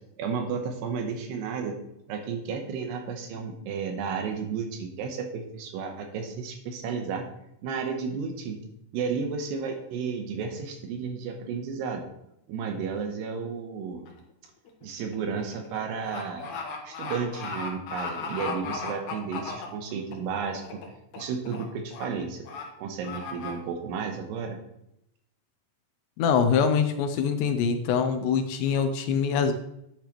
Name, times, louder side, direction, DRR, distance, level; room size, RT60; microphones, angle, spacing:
voice 1, 0.2-1.8 2.1-7.3 7.6-8.6 8.9-12.1 12.5-14.1 14.8-16.5 16.8-20.8 21.2-22.5 22.8-24.6, right 5 dB, 75° right, 4 dB, 2.9 m, -32 dB
sound 1, 14.1-14.3 14.7-20.1 20.5-20.9 21.1-21.6 21.9-22.0 22.4-22.6 23.0-23.5, left 5 dB, 60° left, 2.1 m, -36 dB
voice 2, 26.2-29.5, left 6 dB, 80° left, 7 dB, 2.8 m, -24 dB
11.0 x 8.8 x 3.0 m, 0.80 s
omnidirectional pair, 5.2 m